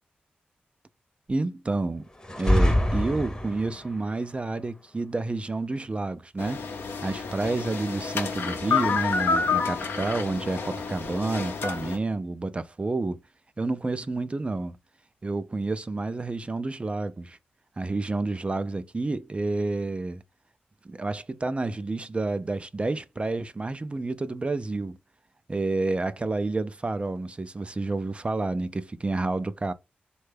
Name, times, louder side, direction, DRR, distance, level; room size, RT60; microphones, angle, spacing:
voice 1, 1.3-2.1 2.4-6.6 7.0-13.2 13.6-14.8 15.2-17.4 17.8-20.2 20.8-25.0 25.5-29.7, right 3 dB, 30° right, 0.4 m, -29 dB
sound 1, 2.2-3.9, left 1 dB, 20° left, 0.8 m, -24 dB
sound 2, 6.4-12.0, left 5 dB, 80° left, 0.6 m, -29 dB
3.2 x 2.2 x 3.3 m
cardioid pair, 45°, 4 cm